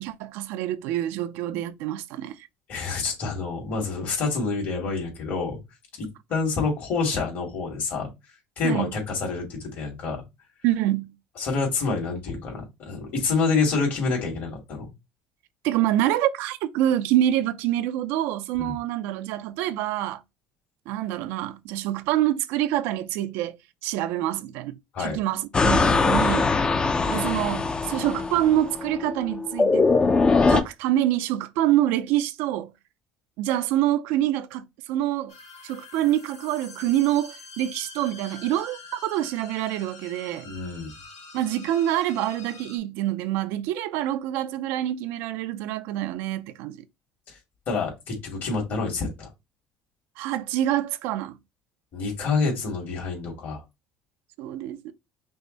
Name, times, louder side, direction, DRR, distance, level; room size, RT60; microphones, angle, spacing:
voice 1, 0.0-2.4 8.6-9.0 10.6-11.1 15.6-20.2 20.9-26.5 27.1-30.0 30.5-32.7 33.4-35.3 35.6-40.5 41.3-46.8 50.2-51.4 54.4-54.9, right 13 dB, 80° right, 0.4 m, -26 dB
voice 2, 2.7-5.6 6.0-8.1 8.6-10.2 11.4-14.9 18.6-18.8 24.9-25.2 40.4-40.9 47.3-47.4 47.7-49.3 51.9-53.6, left 4 dB, 55° left, 2.5 m, -27 dB
sound 1, 25.5-30.6, left 4 dB, 25° left, 0.5 m, -22 dB
sound 2, 35.3-42.8, left 4 dB, 90° left, 1.7 m, -46 dB
5.5 x 2.1 x 3.8 m
supercardioid pair, 100°, 4 cm